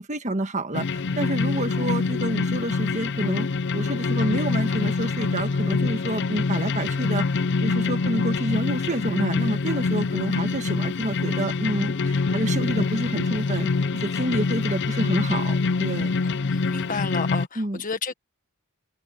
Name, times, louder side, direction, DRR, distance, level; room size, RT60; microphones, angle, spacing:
voice 1, 0.0-3.5 3.7-16.1 17.6-17.8, right 1 dB, 35° right, 1.6 m, -28 dB
sound 1, 0.7-17.5, left 4 dB, 55° left, 0.5 m, -25 dB
voice 2, 16.2-18.1, left 4 dB, 35° left, 1.6 m, -31 dB
open air
head